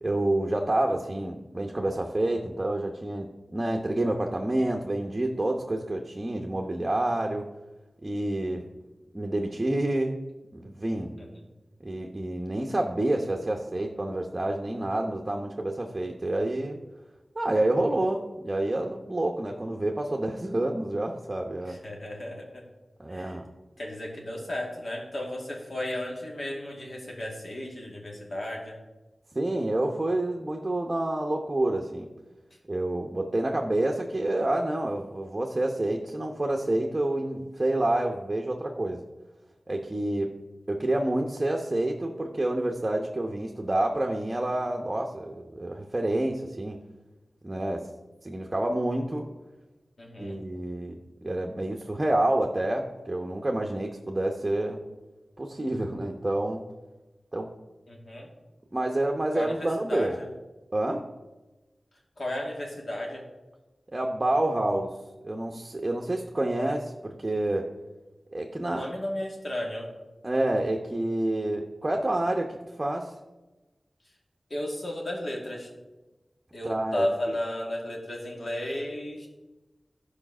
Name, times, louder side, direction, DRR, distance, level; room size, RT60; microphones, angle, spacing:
voice 1, 0.0-7.5 8.0-8.6 9.1-10.2 10.5-11.1 11.8-16.8 17.3-21.8 23.0-23.5 29.3-32.1 32.7-39.0 39.7-40.4 40.7-46.8 47.4-47.9 48.2-49.3 50.2-50.9 51.2-54.8 55.4-56.6 57.3-57.5 58.7-60.1 60.7-61.0 63.9-65.0 65.2-67.7 68.3-68.9 70.2-73.1 76.6-77.3, right 1 dB, 30° right, 1 dB, 0.9 m, -28 dB
voice 2, 21.7-22.6 23.1-23.4 23.8-28.8 50.0-50.4 57.9-58.3 59.3-60.3 62.2-63.2 68.6-69.9 74.5-75.7 76.5-79.3, left 1 dB, 65° left, -1 dB, 2.4 m, -34 dB
12.5 x 5.0 x 6.1 m, 1.1 s
wide cardioid pair, 60°, 0 cm